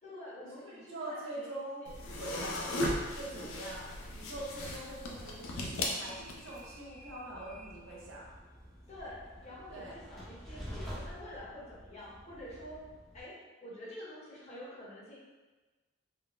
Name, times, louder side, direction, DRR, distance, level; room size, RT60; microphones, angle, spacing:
voice 1, 0.0-2.0 8.9-12.8 13.1-13.3 13.6-15.2, left 1 dB, 35° left, -6 dB, 0.7 m, -48 dB
voice 2, 0.5-1.9 2.2-8.3 9.7-10.0, right 1 dB, 80° right, -5 dB, 0.8 m, -44 dB
sound 1, 1.9-6.6, left 1 dB, 80° left, 0.4 m, -37 dB
Train, 4.9-13.2, equal, ahead, 0.4 m, -49 dB
3.6 x 2.0 x 2.4 m, 1.3 s
head